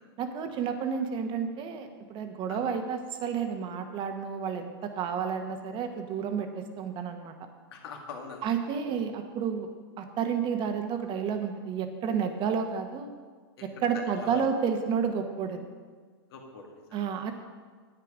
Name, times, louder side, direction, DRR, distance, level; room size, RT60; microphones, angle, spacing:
voice 1, 0.2-7.3 8.4-9.7 10.0-13.1 13.6-15.6 16.9-17.3, right 7 dB, 35° right, 6 dB, 1.3 m, -31 dB
voice 2, 7.7-8.4 8.9-9.0 13.8-13.9 14.1-14.4 16.3-17.2, left 6 dB, 70° left, 1 dB, 2.2 m, -43 dB
9.8 x 9.1 x 5.0 m, 1.5 s
hypercardioid pair, 120°, 13 cm